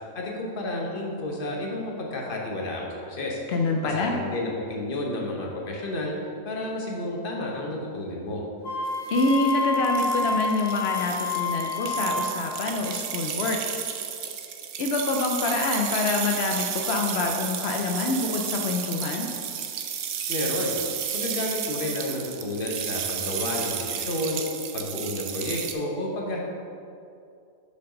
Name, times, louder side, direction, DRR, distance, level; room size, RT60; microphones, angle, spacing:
voice 1, 0.1-3.4 3.8-6.1 6.4-8.4 20.3-20.7 21.1-24.4 24.7-26.4, left 1 dB, 40° left, -1 dB, 1.1 m, -31 dB
voice 2, 3.5-4.2 9.1-13.6 14.2-14.3 14.8-19.3, left 3 dB, 70° left, 2 dB, 0.6 m, -26 dB
Wind instrument woodwind instrument, 8.6-12.4, left 3 dB, 90° left, 2.3 m, -28 dB
sound 1, 8.9-25.7, right 8 dB, 65° right, 0.8 m, -32 dB
6.8 x 5.3 x 5.1 m, 2.5 s
omnidirectional pair, 1.7 m